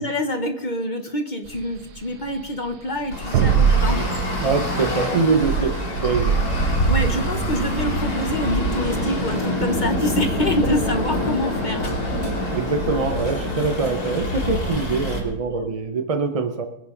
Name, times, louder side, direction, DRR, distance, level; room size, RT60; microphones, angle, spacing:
voice 1, 0.0-4.1 5.6-5.7 6.9-11.9 15.5-15.7, left 1 dB, 35° left, 6 dB, 1.0 m, -26 dB
sound 1, 1.5-12.3, right 7 dB, 90° right, 1.3 m, -25 dB
Traffic noise roadway noise, 3.1-15.2, left 1 dB, 70° left, 3.6 m, -25 dB
voice 2, 3.9-5.7 6.0-6.4 12.2-16.7, right 4 dB, 45° right, 7 dB, 0.4 m, -24 dB
23.5 x 10.0 x 3.8 m, 0.88 s
omnidirectional pair, 1.7 m